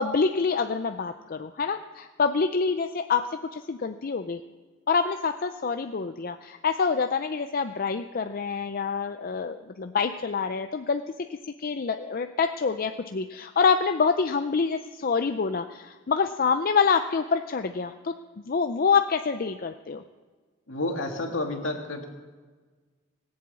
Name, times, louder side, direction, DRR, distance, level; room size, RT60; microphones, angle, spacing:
voice 1, 0.0-4.4 4.9-11.0 11.4-20.0, left 5 dB, 45° left, 7 dB, 0.5 m, -26 dB
voice 2, 20.7-22.1, left 2 dB, 70° left, 2 dB, 2.2 m, -30 dB
19.0 x 7.7 x 8.3 m, 1.4 s
head